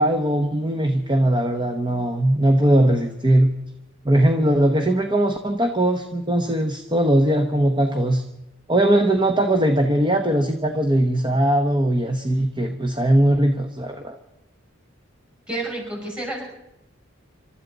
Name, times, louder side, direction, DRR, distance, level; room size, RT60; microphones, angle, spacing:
voice 1, 0.0-3.5 4.0-8.2 8.7-14.2, right 1 dB, 20° right, 5 dB, 1.0 m, -20 dB
voice 2, 15.5-16.4, right 2 dB, 5° right, -1 dB, 5.7 m, -29 dB
27.5 x 13.0 x 4.0 m, 0.90 s
head